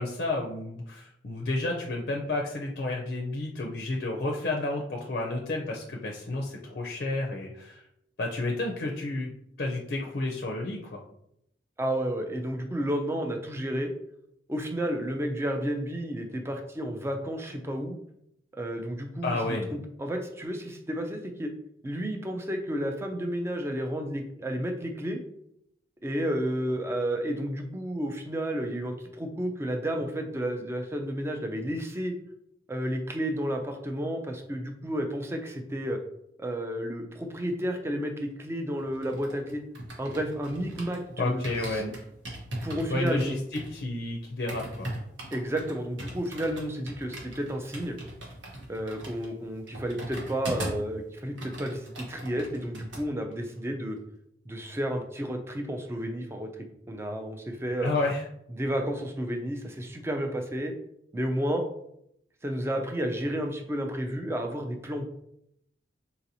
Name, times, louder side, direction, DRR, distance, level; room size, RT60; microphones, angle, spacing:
voice 1, 0.0-7.8 8.2-9.3 9.6-11.0 19.2-19.7 41.2-41.9 42.9-44.9 57.8-58.2, left 2 dB, 50° left, 0 dB, 0.4 m, -31 dB
voice 2, 11.8-13.9 14.5-18.0 18.5-21.5 21.8-25.2 26.0-32.1 32.7-36.0 36.4-39.6 40.0-41.9 42.6-43.4 45.3-48.0 48.7-54.0 54.5-56.5 56.9-57.9 58.5-60.7 61.1-61.7 62.4-65.0, equal, 15° right, 4 dB, 0.3 m, -31 dB
sound 1, 38.8-41.1 41.4-50.9 51.2-53.0 53.3-53.6, right 1 dB, 85° right, 0.9 m, -40 dB
3.9 x 2.8 x 2.6 m, 0.76 s
head